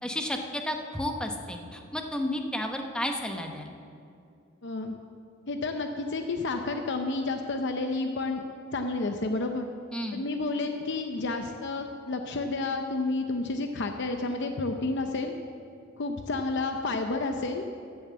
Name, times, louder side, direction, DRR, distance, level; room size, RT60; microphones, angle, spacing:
voice 1, 0.0-3.7 9.9-10.2, left 1 dB, 5° left, 3 dB, 0.9 m, -32 dB
voice 2, 4.6-4.9 5.5-8.4 8.7-9.7 10.1-15.3 16.0-17.6, left 3 dB, 60° left, 5 dB, 0.7 m, -30 dB
14.5 x 7.2 x 7.4 m, 2.5 s
head